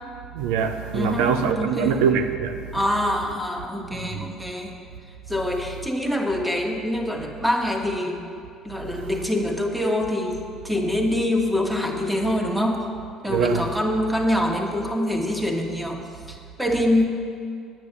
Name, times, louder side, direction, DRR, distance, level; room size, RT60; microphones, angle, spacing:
voice 1, 0.4-2.6 4.1-4.3 13.3-13.7, right 7 dB, 85° right, 0.7 m, -23 dB
voice 2, 0.9-2.1 2.7-4.8 5.3-8.2 8.6-10.4 10.6-12.8 13.2-16.0 16.3-17.1, left 1 dB, 5° right, 1.6 m, -25 dB
9.8 x 9.2 x 6.7 m
supercardioid pair, 95°, 0 cm